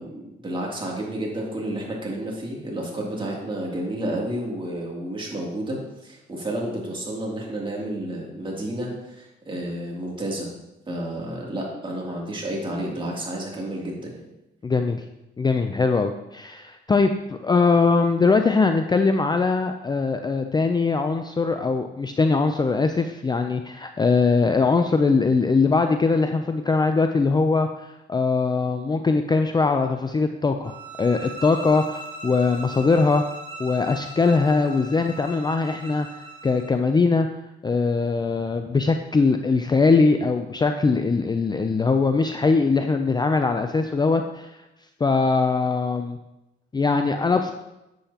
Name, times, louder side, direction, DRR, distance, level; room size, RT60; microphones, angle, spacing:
voice 1, 0.0-10.5 10.9-14.2, right 1 dB, 25° right, -3 dB, 2.8 m, -31 dB
voice 2, 14.6-15.0 15.4-33.2 33.6-37.3 37.6-44.5 45.0-46.2 46.7-47.5, left 4 dB, 20° left, 6 dB, 0.5 m, -21 dB
sound 1, 30.6-36.8, right 2 dB, 70° right, 1.4 m, -39 dB
9.9 x 7.8 x 2.9 m, 0.93 s
cardioid pair, 90°, 20 cm